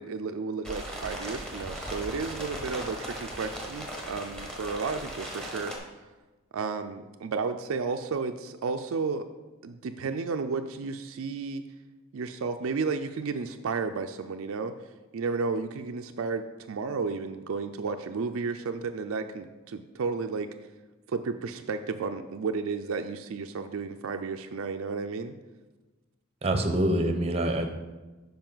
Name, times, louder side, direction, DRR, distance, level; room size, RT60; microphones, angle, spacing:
voice 1, 0.0-5.7 6.5-9.3 9.6-11.6 12.1-14.7 15.1-20.5 21.1-25.3, right 4 dB, 70° right, 6 dB, 0.4 m, -32 dB
sound 1, 0.6-5.8, equal, ahead, 1.0 m, -38 dB
voice 2, 26.4-27.7, right 1 dB, 30° right, 6 dB, 0.7 m, -25 dB
8.8 x 5.4 x 3.9 m, 1.2 s
head